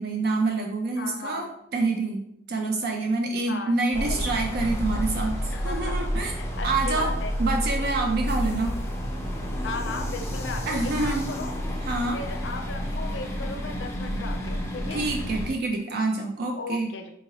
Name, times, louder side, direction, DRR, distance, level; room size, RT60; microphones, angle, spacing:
voice 1, 0.0-1.5 1.7-2.2 2.5-7.1 7.4-8.7 10.7-11.2 11.8-12.2 14.9-16.9, right 3 dB, 50° right, 2 dB, 0.4 m, -27 dB
voice 2, 1.0-1.5 3.5-4.3 5.5-6.1 6.4-7.3 9.6-11.5 12.1-15.1 16.6-17.1, left 3 dB, 65° left, 3 dB, 0.5 m, -36 dB
sound 1, 3.9-15.5, equal, 15° left, 0.4 m, -30 dB
3.7 x 2.9 x 2.7 m, 0.75 s
head